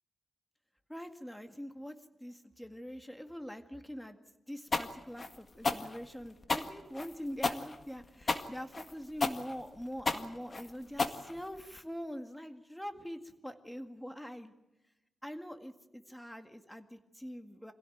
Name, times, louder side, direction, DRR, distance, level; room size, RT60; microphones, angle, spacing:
voice 1, 0.9-4.2 4.5-14.5 15.2-17.7, equal, 5° left, 6 dB, 2.0 m, -44 dB
sound 1, 4.7-11.8, left 3 dB, 40° left, 1.8 m, -33 dB
26.5 x 16.5 x 9.3 m, 0.95 s
wide cardioid pair, 100°, 0 cm